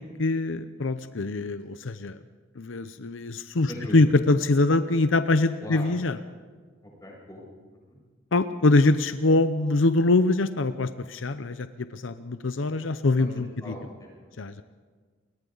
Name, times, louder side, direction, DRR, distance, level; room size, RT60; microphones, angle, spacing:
voice 1, 0.0-2.2 2.6-6.2 8.3-13.8 14.4-14.6, left 2 dB, 85° left, 11 dB, 0.7 m, -24 dB
voice 2, 6.8-7.4 7.9-8.0 13.2-13.3 13.6-14.3, left 1 dB, 20° left, -3 dB, 7.7 m, -40 dB
29.0 x 22.5 x 4.0 m, 1.5 s
head